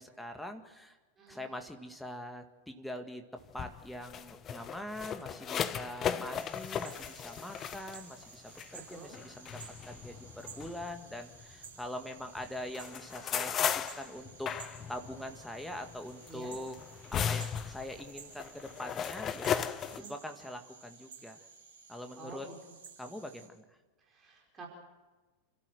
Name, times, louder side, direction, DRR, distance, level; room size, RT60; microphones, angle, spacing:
voice 1, 0.0-1.0 1.3-3.2 3.5-9.6 9.9-16.8 17.1-19.7 20.1-21.5 21.9-22.5 23.0-23.8, left 1 dB, 5° left, 5 dB, 1.9 m, -43 dB
sound 1, 3.5-12.0 12.4-20.0, left 8 dB, 25° left, 0.9 m, -37 dB
voice 2, 5.9-6.2 8.9-9.2 16.3-16.6 19.8-20.1 22.2-22.7 24.0-24.7, right 3 dB, 20° right, -1 dB, 4.8 m, -49 dB
sound 2, 6.3-23.5, right 5 dB, 55° right, 7.0 m, -54 dB
29.0 x 12.5 x 7.9 m, 1.2 s
figure-of-eight pair, 90°, 0 cm